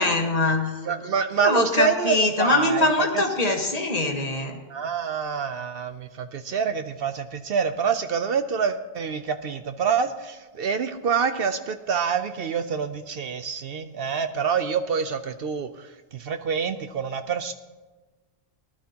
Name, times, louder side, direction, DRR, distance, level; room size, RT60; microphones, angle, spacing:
voice 1, 0.0-0.7 1.0-1.1 1.4-4.6, left 2 dB, 35° left, 3 dB, 1.4 m, -23 dB
voice 2, 0.9-3.2 4.7-17.5, right 6 dB, 65° right, 9 dB, 0.8 m, -26 dB
18.5 x 11.5 x 2.8 m, 1.2 s
omnidirectional pair, 1.2 m